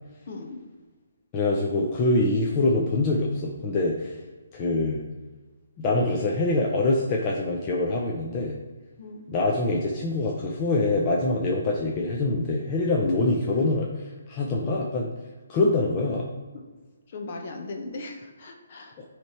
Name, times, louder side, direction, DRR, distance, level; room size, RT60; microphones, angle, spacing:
voice 1, 0.2-0.6 9.0-9.3 16.5-16.6 17.1-19.1, left 2 dB, 45° left, 2 dB, 1.1 m, -38 dB
voice 2, 1.3-4.2 4.5-5.0 5.8-8.6 9.3-15.1 15.5-16.3 19.0-19.1, left 2 dB, 25° left, -2 dB, 0.7 m, -24 dB
9.5 x 3.4 x 4.3 m, 1.3 s
hypercardioid pair, 160°, 0 cm